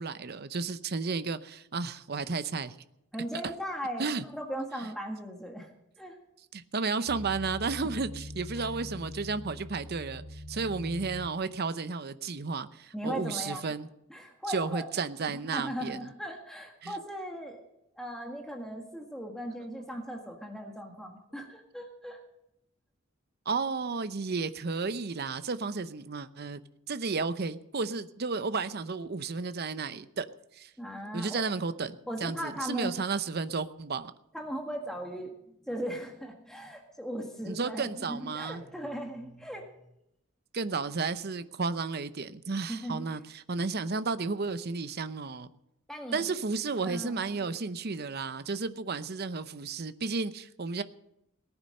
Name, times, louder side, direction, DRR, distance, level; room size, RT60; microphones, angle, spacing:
voice 1, 0.0-2.8 4.0-4.2 6.5-13.9 14.5-16.1 16.8-17.0 23.5-26.6 26.9-30.3 30.5-30.7 31.1-34.1 37.4-38.6 40.5-45.5 46.1-50.8, right 4 dB, 50° right, 12 dB, 0.7 m, -33 dB
voice 2, 3.1-5.7 6.0-6.2 7.8-7.9 8.6-8.7 12.9-13.7 14.1-14.8 15.3-17.6 18.0-22.2 30.8-31.4 32.1-32.9 34.3-39.7 42.7-43.0 45.9-46.3 46.8-47.5, equal, ahead, 1 dB, 1.7 m, -38 dB
sound 1, 7.1-11.3, left 1 dB, 60° left, 2.2 m, -43 dB
18.5 x 9.8 x 6.6 m, 0.82 s
head